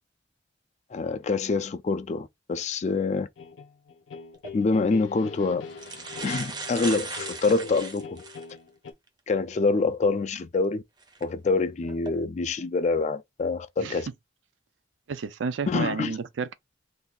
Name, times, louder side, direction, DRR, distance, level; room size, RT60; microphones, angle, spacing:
voice 1, 0.9-3.3 4.5-5.6 6.2-8.2 9.3-10.8 11.2-14.1 15.7-16.2, left 3 dB, 40° left, 0.3 m, -26 dB
sound 1, 3.4-8.9, left 5 dB, 85° left, 0.6 m, -42 dB
sound 2, 4.3-4.5 5.3-5.4 5.7-8.5 9.1-9.2 11.0-11.2 11.8-12.1, right 4 dB, 25° right, 0.5 m, -37 dB
voice 2, 15.1-16.5, right 5 dB, 80° right, 0.4 m, -31 dB
2.6 x 2.3 x 3.6 m
head